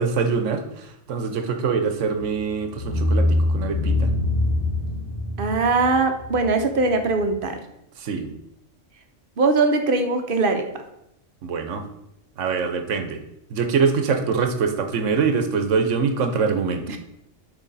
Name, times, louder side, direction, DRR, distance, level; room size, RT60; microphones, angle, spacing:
voice 1, 0.0-4.1 8.0-8.3 11.4-11.9 12.4-13.2 13.5-16.8, right 5 dB, 80° right, 6 dB, 1.1 m, -24 dB
sound 1, 2.2-2.3 2.7-7.3, left 2 dB, 60° left, 2.6 m, -24 dB
voice 2, 5.4-7.6 9.4-10.7 16.9-17.0, right 3 dB, 50° right, 6 dB, 0.8 m, -21 dB
8.4 x 3.3 x 4.0 m, 0.81 s
omnidirectional pair, 1.3 m